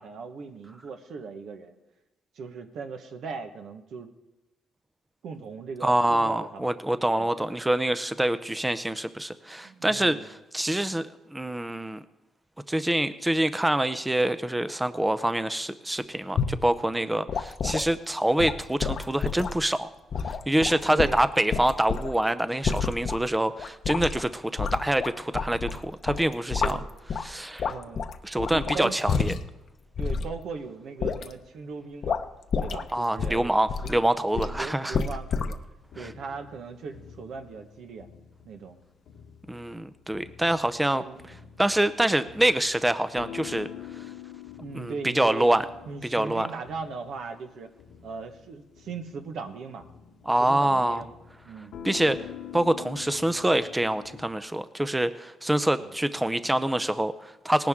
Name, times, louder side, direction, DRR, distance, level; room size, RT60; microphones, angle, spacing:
voice 1, 0.0-1.7 2.3-4.1 5.2-6.7 7.1-7.3 9.6-10.3 20.9-21.2 26.6-26.9 27.7-28.1 28.5-29.0 30.0-32.2 32.6-35.6 36.0-38.1 38.4-38.8 40.9-41.6 44.6-47.7 48.0-49.8 50.4-51.1 51.4-51.8 55.8-55.9, right 5 dB, 70° right, 6 dB, 1.2 m, -38 dB
voice 2, 5.8-12.0 12.7-19.9 20.3-26.8 27.2-27.7 28.2-29.3 32.9-35.0 36.0-36.1 39.5-41.0 41.6-43.7 44.7-45.7 46.1-46.5 50.3-51.0 51.8-52.2 52.5-57.7, right 1 dB, 10° right, 12 dB, 0.5 m, -26 dB
sound 1, 16.4-16.6 17.3-17.9 18.4-19.6 20.1-22.2 22.6-23.2 23.6-24.2 24.6-25.8 26.1-27.3 27.6-29.6 30.0-30.3 31.0-31.3 32.0-32.2 32.5-32.9 33.2-34.0 34.3-34.6 34.9-35.5, left 6 dB, 55° left, 0.8 m, -29 dB
sound 2, 35.8-54.3, left 9 dB, 75° left, 1.2 m, -46 dB
18.5 x 10.5 x 3.7 m, 1.0 s
cardioid pair, 90°, 0 cm